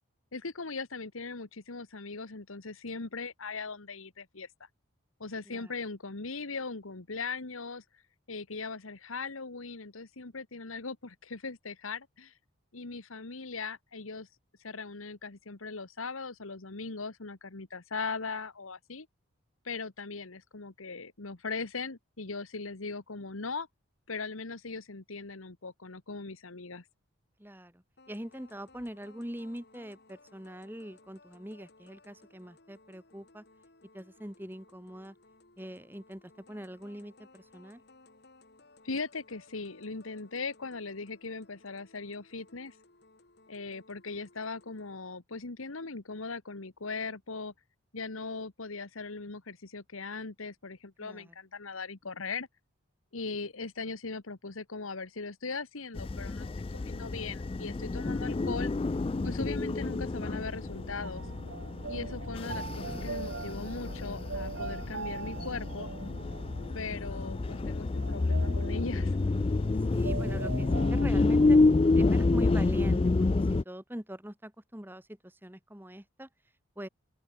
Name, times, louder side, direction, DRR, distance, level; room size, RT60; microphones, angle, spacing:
voice 1, 0.3-4.5 5.2-7.8 8.3-12.3 12.7-14.3 14.6-19.1 19.6-23.7 24.1-26.8 38.8-42.7 43.5-47.5 47.9-52.5 53.1-58.7 59.2-61.3 61.9-65.9 66.7-69.2, left 4 dB, 85° left, 1.5 m, -39 dB
voice 2, 27.4-33.4 33.9-35.2 35.6-36.2 36.5-37.8 51.0-51.3 69.9-71.6 72.0-76.3 76.8-76.9, equal, 10° right, 2.0 m, -42 dB
sound 1, 28.0-45.0, left 2 dB, 50° left, 2.1 m, -60 dB
sound 2, 55.9-73.6, left 3 dB, 25° left, 0.3 m, -29 dB
sound 3, 60.3-71.1, right 4 dB, 65° right, 0.8 m, -42 dB
open air
head